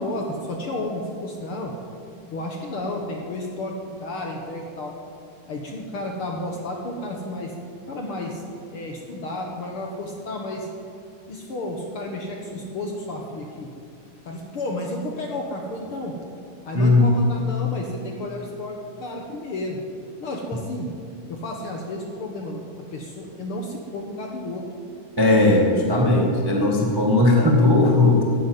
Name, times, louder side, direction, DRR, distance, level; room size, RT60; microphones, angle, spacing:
voice 1, 0.0-1.8 2.3-3.8 4.0-4.9 5.5-7.5 7.9-8.4 8.7-10.7 11.3-13.7 14.3-16.1 16.7-19.8 20.2-20.9 21.3-22.6 22.9-24.6, left 1 dB, 55° left, 1 dB, 1.7 m, -32 dB
voice 2, 16.7-17.1 25.2-28.2, left 2 dB, 15° right, -1 dB, 0.8 m, -17 dB
15.0 x 9.6 x 9.2 m, 2.4 s
omnidirectional pair, 3.8 m